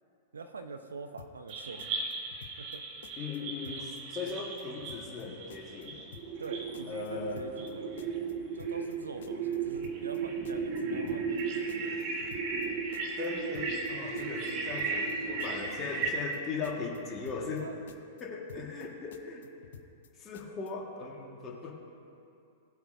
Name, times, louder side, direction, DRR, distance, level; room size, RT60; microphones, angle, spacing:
voice 1, 0.3-2.1 2.6-2.9 3.4-3.9 6.4-7.9 8.5-11.9 17.6-17.8, right 4 dB, 70° right, 8 dB, 0.6 m, -44 dB
sound 1, 1.2-1.5 1.8-2.8 3.0-3.4 3.6-4.0 4.3-5.2 5.5-5.9 6.1-6.5 6.7-7.7 8.0-8.3 8.6-9.0 9.2-10.2 10.4-10.8 11.1-11.4 11.7-12.7 12.9-13.3 13.5-13.9 14.2-15.1 15.4-15.8 16.0-16.4 16.6-17.6 17.9-18.2 18.5-18.9 19.1-20.1 20.3-20.7, left 8 dB, 55° left, 0.7 m, -51 dB
sound 2, 1.5-16.1, right 4 dB, 40° right, 1.3 m, -35 dB
voice 2, 3.2-6.0 6.9-7.4 13.2-17.7 18.2-19.4 20.2-21.7, left 4 dB, 25° left, -1 dB, 1.6 m, -38 dB
17.5 x 8.0 x 2.6 m, 2.7 s
figure-of-eight pair, 100°, 0 cm